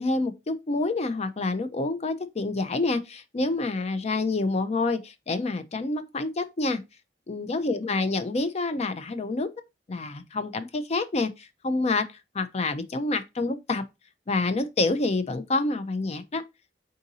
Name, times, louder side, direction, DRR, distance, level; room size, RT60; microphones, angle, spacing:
voice 1, 0.0-6.8 7.3-9.5 9.9-12.1 12.3-13.8 14.3-16.4, left 3 dB, 35° left, 0.5 m, -27 dB
3.7 x 2.6 x 4.0 m
head